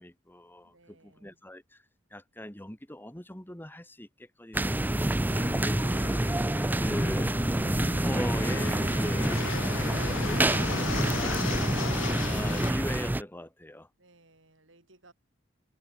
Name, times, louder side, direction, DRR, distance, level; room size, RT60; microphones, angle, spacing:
voice 1, 0.0-1.8 2.1-5.9 6.8-7.4 7.8-9.5 9.9-13.9, left 1 dB, 10° left, 2.1 m, -41 dB
voice 2, 0.6-1.4 14.0-15.1, right 2 dB, 75° right, 5.4 m, -60 dB
sound 1, 4.5-13.2, right 1 dB, 10° right, 0.5 m, -27 dB
Fixed-wing aircraft airplane, 5.3-12.7, left 5 dB, 85° left, 1.0 m, -36 dB
head